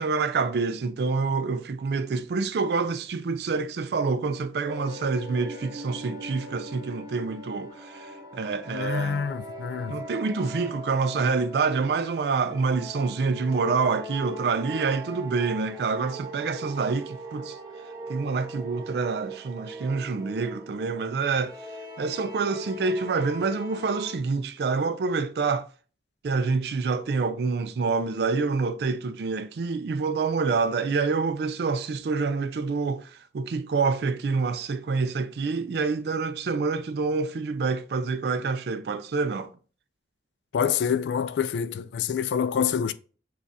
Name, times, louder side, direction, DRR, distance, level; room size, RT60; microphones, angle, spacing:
voice 1, 0.0-9.3 9.9-17.6 18.1-21.6 22.0-25.7 26.2-39.5, right 4 dB, 70° right, 0.3 m, -27 dB
sound 1, 4.7-24.2, equal, 20° right, 0.6 m, -40 dB
voice 2, 8.7-9.9 40.5-42.9, left 7 dB, 80° left, 0.3 m, -26 dB
6.2 x 2.4 x 2.7 m
head